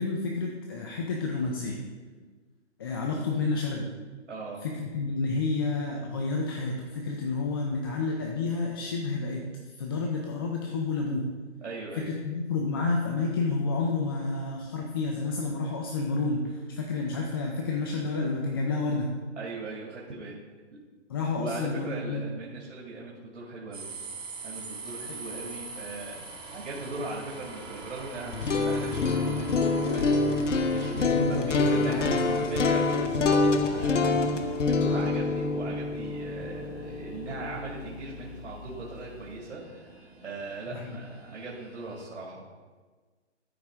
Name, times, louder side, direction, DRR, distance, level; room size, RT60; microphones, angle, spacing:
voice 1, 0.0-1.8 2.8-3.9 4.6-9.5 9.8-11.3 12.0-19.1 21.1-22.2 30.9-32.4 40.7-41.0, left 3 dB, 20° left, 0 dB, 0.4 m, -30 dB
voice 2, 4.3-4.6 11.6-12.2 19.4-20.4 21.4-23.9 24.4-42.5, right 2 dB, 75° right, -4 dB, 2.3 m, -39 dB
sound 1, 23.7-42.0, right 3 dB, 40° right, 2.6 m, -44 dB
sound 2, 28.2-38.3, left 3 dB, 90° left, 0.9 m, -26 dB
13.5 x 4.7 x 3.6 m, 1.4 s
hypercardioid pair, 145°, 36 cm